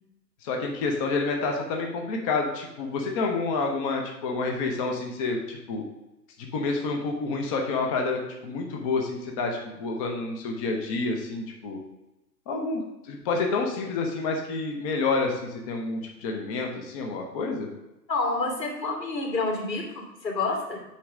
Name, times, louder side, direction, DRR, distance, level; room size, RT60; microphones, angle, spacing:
voice 1, 0.4-5.8 6.5-11.8 12.5-17.7, left 3 dB, 20° left, 2 dB, 0.7 m, -29 dB
voice 2, 18.1-20.8, left 3 dB, 85° left, -1 dB, 2.9 m, -28 dB
8.4 x 3.0 x 6.1 m, 0.95 s
hypercardioid pair, 130°, 49 cm